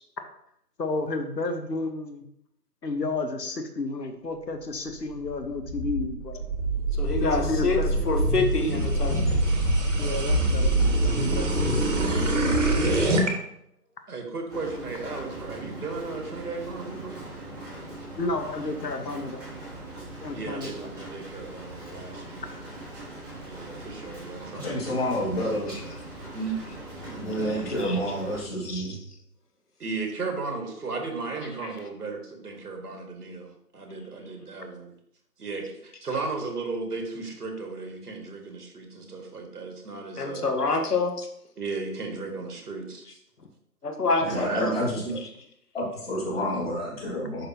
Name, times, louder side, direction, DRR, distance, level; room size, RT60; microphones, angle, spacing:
voice 1, 0.8-2.2 2.8-6.4 7.2-8.2 10.0-10.7 11.0-12.1 18.2-19.4 20.2-20.7, left 3 dB, 85° left, 7 dB, 1.2 m, -32 dB
sound 1, 5.2-13.3, right 1 dB, 50° right, 1.6 m, -24 dB
voice 2, 7.0-7.8 8.0-9.4 27.8-28.0 28.6-28.9 40.2-41.3 43.8-44.7, left 3 dB, 70° left, 4 dB, 1.3 m, -27 dB
voice 3, 14.1-17.3 20.3-22.6 23.4-25.1 26.3-26.6 29.8-34.9 35.4-40.5 41.6-43.2 44.3-44.8 45.0-45.1, right 3 dB, 70° right, 3 dB, 1.9 m, -35 dB
Rain, 14.5-28.4, right 1 dB, 15° right, 1.3 m, -41 dB
voice 4, 24.5-25.7 27.0-29.0 44.2-45.0 45.7-47.5, equal, 35° left, -3 dB, 2.2 m, -29 dB
11.0 x 4.0 x 2.8 m, 0.73 s
figure-of-eight pair, 165°, 49 cm